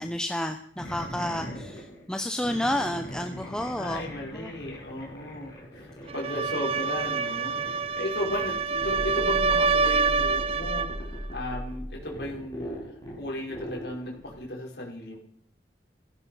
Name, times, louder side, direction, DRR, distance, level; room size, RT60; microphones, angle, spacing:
voice 1, 0.0-4.0 4.3-4.5, left 1 dB, 5° left, 6 dB, 0.8 m, -30 dB
sound 1, 0.8-14.5, equal, 20° left, 6.9 m, -39 dB
voice 2, 3.8-5.5 5.7-7.6 8.0-12.8 13.2-15.2, left 1 dB, 65° left, -1 dB, 5.1 m, -35 dB
sound 2, 6.1-11.0, right 5 dB, 30° right, 0.5 m, -26 dB
16.0 x 15.0 x 5.6 m, 0.63 s
head